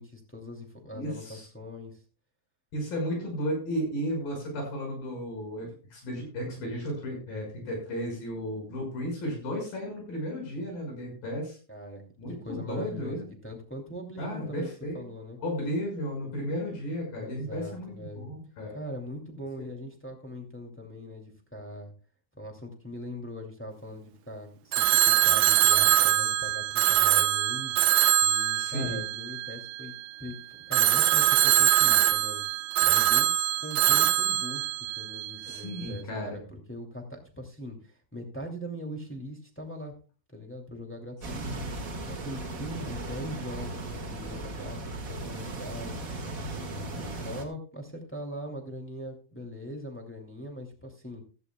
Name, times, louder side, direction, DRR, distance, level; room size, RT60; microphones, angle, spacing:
voice 1, 0.0-1.9 11.7-12.0 12.4-15.4 17.2-18.3 18.7-21.9 22.3-29.9 30.2-30.4 30.7-33.3 33.6-39.9 40.3-41.6 42.1-43.8 44.1-46.1 46.4-51.2, equal, 5° left, 1 dB, 1.8 m, -41 dB
voice 2, 0.9-1.5 2.7-11.6 12.2-13.3 14.2-15.0 15.4-18.8 19.6-19.7 28.6-29.0 35.4-36.4 41.4-41.7, equal, 70° left, 1 dB, 7.5 m, -34 dB
Telephone, 24.7-30.0 30.7-35.6, right 12 dB, 80° right, 1.7 m, -23 dB
sound 1, 41.2-47.4, right 2 dB, 35° right, 1.5 m, -37 dB
15.5 x 13.5 x 2.3 m, 0.37 s
omnidirectional pair, 4.1 m